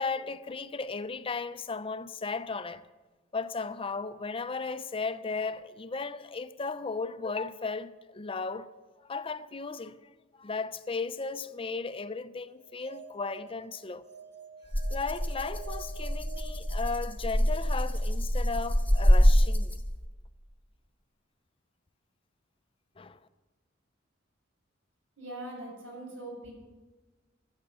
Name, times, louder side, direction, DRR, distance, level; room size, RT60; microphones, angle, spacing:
voice 1, 0.0-2.8 3.3-8.7 9.1-10.0 10.4-14.1 14.9-19.8 23.0-23.2, left 4 dB, 30° left, 0.6 m, -35 dB
sound 1, 12.6-17.4, right 6 dB, 60° right, 1.4 m, -48 dB
Rattle (instrument), 14.7-20.1, equal, 10° left, 1.1 m, -25 dB
voice 2, 25.2-26.5, right 1 dB, 90° right, 7.0 m, -41 dB
15.5 x 13.5 x 6.8 m
head